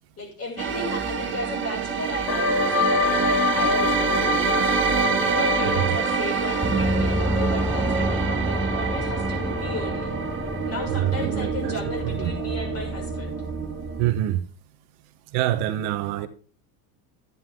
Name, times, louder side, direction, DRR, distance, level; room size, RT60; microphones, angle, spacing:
voice 1, 0.2-10.1 10.7-13.3, left 2 dB, 35° left, 6.0 m, -35 dB
sound 1, 0.6-14.1, right 7 dB, 25° right, 2.2 m, -27 dB
sound 2, 2.3-13.6, left 4 dB, 65° left, 4.0 m, -28 dB
Gong, 6.6-11.9, right 1 dB, 5° right, 1.2 m, -27 dB
voice 2, 10.9-12.3 14.0-14.4 15.3-16.3, right 13 dB, 60° right, 1.2 m, -26 dB
13.0 x 9.6 x 3.7 m
supercardioid pair, 120°, 45 cm